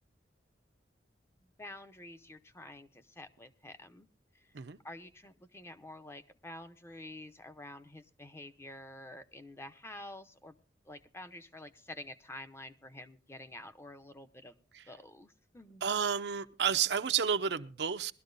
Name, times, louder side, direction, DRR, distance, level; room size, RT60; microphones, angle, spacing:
voice 1, 1.4-4.1 4.3-4.5 4.8-10.6 10.8-14.6 14.9-15.8, left 1 dB, 15° left, 0.7 m, -49 dB
voice 2, 15.8-18.1, right 7 dB, 70° right, 0.6 m, -31 dB
21.0 x 12.5 x 2.6 m
head